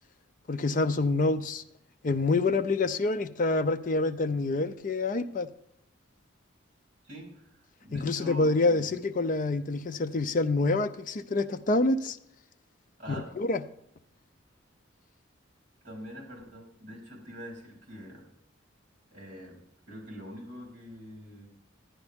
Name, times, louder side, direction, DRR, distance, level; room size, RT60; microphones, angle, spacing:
voice 1, 0.5-1.6 2.0-5.5 7.9-12.2 13.1-13.6, left 3 dB, 40° left, 0.5 m, -27 dB
voice 2, 7.0-8.9 13.0-13.3 15.8-18.3 19.1-21.5, equal, 45° right, 3.7 m, -45 dB
11.0 x 10.5 x 3.5 m
head